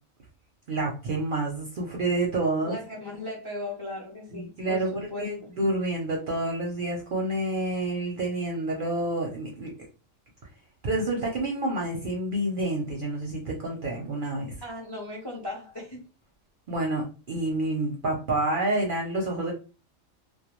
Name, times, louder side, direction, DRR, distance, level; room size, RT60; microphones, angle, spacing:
voice 1, 0.7-2.8 4.3-9.7 10.8-14.6 16.7-19.5, right 2 dB, 55° right, 0.6 m, -28 dB
voice 2, 2.6-5.3 14.6-16.0, left 1 dB, 30° left, 0.4 m, -37 dB
2.2 x 2.2 x 2.9 m
omnidirectional pair, 1.4 m